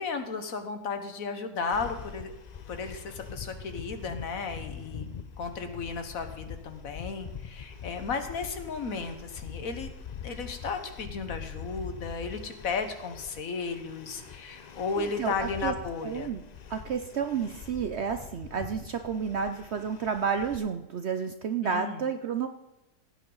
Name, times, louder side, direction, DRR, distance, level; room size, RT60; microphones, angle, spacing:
voice 1, 0.0-2.3 2.7-5.0 5.4-9.9 10.2-16.3 21.6-22.0, left 4 dB, 65° left, 8 dB, 1.5 m, -34 dB
sound 1, 1.7-20.6, left 7 dB, 85° left, 0.3 m, -43 dB
voice 2, 15.0-15.7 16.0-16.4 16.7-22.5, right 6 dB, 60° right, 8 dB, 0.7 m, -31 dB
17.0 x 9.0 x 3.9 m, 0.95 s
omnidirectional pair, 1.6 m